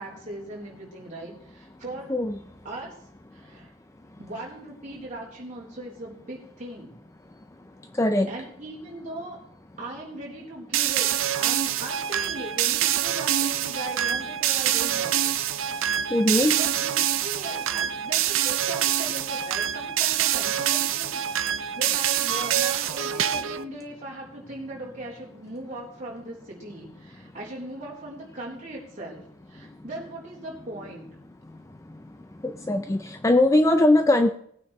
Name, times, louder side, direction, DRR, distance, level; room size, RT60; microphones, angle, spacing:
voice 1, 0.0-2.1 2.6-2.9 3.3-3.7 4.2-6.9 8.3-9.4 9.8-15.4 15.6-15.9 16.6-31.2, right 1 dB, 35° right, -4 dB, 3.6 m, -39 dB
voice 2, 8.0-8.3 16.1-16.6 32.4-34.3, left 1 dB, 15° left, 7 dB, 0.4 m, -20 dB
sound 1, 10.7-23.6, right 11 dB, 70° right, 0.6 m, -25 dB
19.5 x 9.1 x 3.2 m, 0.65 s
head